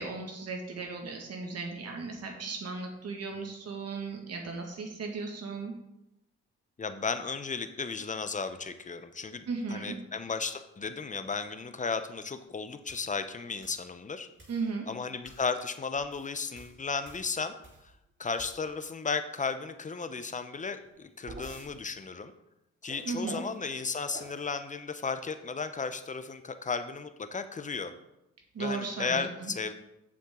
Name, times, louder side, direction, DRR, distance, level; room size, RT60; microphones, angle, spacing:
voice 1, 0.0-5.7 9.5-10.0 14.5-14.9 23.1-23.4 28.5-29.5, right 4 dB, 55° right, 2 dB, 1.9 m, -36 dB
voice 2, 6.8-9.4 9.7-14.3 14.9-17.5 18.2-22.3 22.8-27.9 28.6-29.7, left 4 dB, 25° left, 10 dB, 0.8 m, -34 dB
sound 1, 12.9-13.1 13.6-13.9 14.4-14.7 15.2-15.5 16.0-17.9 18.3-18.9 20.8-21.7 22.9-23.6 24.1-24.4, right 2 dB, 40° right, 3.7 m, -48 dB
8.6 x 7.2 x 3.8 m, 0.88 s
cardioid pair, 90°, 30 cm